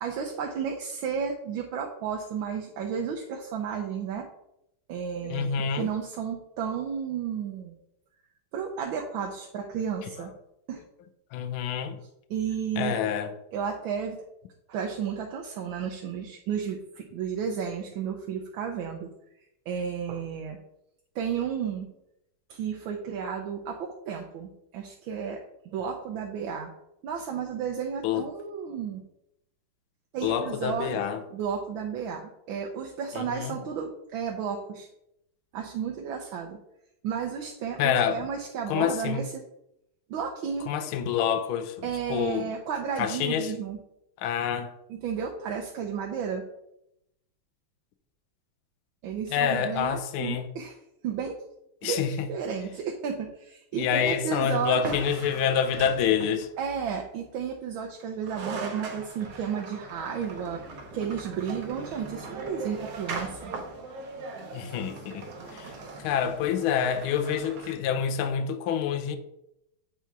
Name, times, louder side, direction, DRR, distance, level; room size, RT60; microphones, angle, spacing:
voice 1, 0.0-4.3 4.9-7.7 8.5-10.3 10.7-10.8 12.3-13.0 13.5-14.2 14.7-19.1 19.7-20.6 21.1-21.9 22.5-26.7 27.0-29.0 30.1-30.9 31.3-34.9 35.5-36.6 37.0-39.4 40.1-40.7 41.8-43.8 44.9-46.4 49.0-50.8 51.0-51.4 51.8-55.0 56.6-60.6 60.9-63.5 65.6-66.0, right 7 dB, 75° right, 1.4 m, -33 dB
voice 2, 5.2-5.9 11.3-12.0 12.8-13.3 28.0-28.3 30.2-31.2 33.1-33.6 37.8-38.3 38.7-39.2 40.7-42.5 43.0-43.5 44.2-44.7 49.3-50.5 51.8-52.3 53.7-56.5 64.5-65.2 65.5-65.7 66.0-69.2, left 8 dB, 80° left, 1.5 m, -27 dB
sound 1, 54.8-56.6 58.0-58.1 58.2-67.7, right 3 dB, 60° right, 1.2 m, -40 dB
8.2 x 2.9 x 4.5 m
omnidirectional pair, 2.3 m